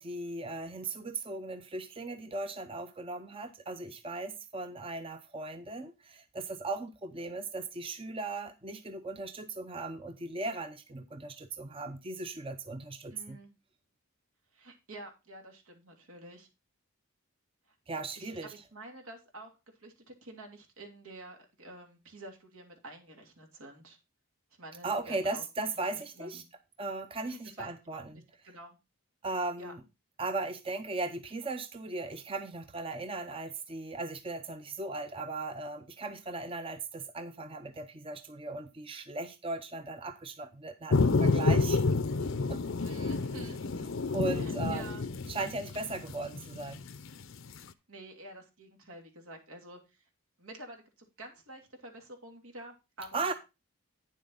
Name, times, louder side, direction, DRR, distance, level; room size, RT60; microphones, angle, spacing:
voice 1, 0.0-13.4 17.9-18.5 24.8-26.4 26.8-28.2 29.2-29.8 30.2-41.8 42.5-42.6 44.1-45.0 45.3-46.8 53.1-53.3, right 3 dB, 25° right, 0.6 m, -37 dB
voice 2, 13.1-13.5 14.5-16.5 18.2-19.5 19.8-24.0 24.6-25.4 25.9-26.4 27.3-28.8 29.6-29.7 42.8-43.8 44.2-45.0 47.9-50.0 50.4-53.3, right 1 dB, 85° right, 2.9 m, -49 dB
sound 1, 40.9-47.6, left 3 dB, 60° left, 0.6 m, -29 dB
9.6 x 7.4 x 3.9 m
head